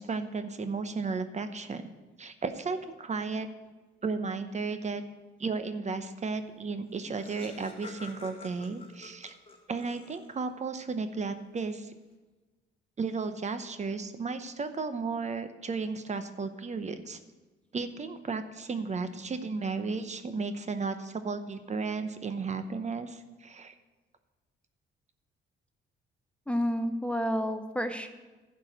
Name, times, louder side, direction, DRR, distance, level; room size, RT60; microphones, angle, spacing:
voice 1, 0.0-1.9 2.2-3.5 4.0-5.0 5.4-9.3 9.7-11.9 13.0-17.2 17.7-23.7, right 4 dB, 35° right, 10 dB, 0.8 m, -34 dB
Laughter, 6.6-6.7 6.8-10.5, left 3 dB, 30° left, 1.7 m, -48 dB
voice 2, 26.5-28.1, equal, 5° left, 7 dB, 0.6 m, -30 dB
11.5 x 4.8 x 7.8 m, 1.2 s
cardioid pair, 90°, 20 cm